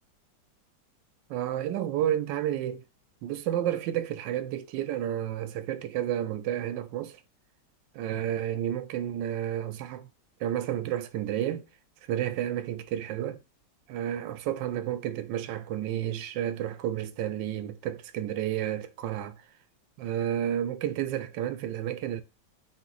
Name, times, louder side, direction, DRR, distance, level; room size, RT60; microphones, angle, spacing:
voice 1, 1.3-2.8 3.2-7.2 7.9-10.1 10.4-11.6 12.1-13.4 13.9-19.4 20.0-22.2, right 11 dB, 90° right, 1.3 m, -31 dB
5.9 x 2.2 x 3.8 m
omnidirectional pair, 1.9 m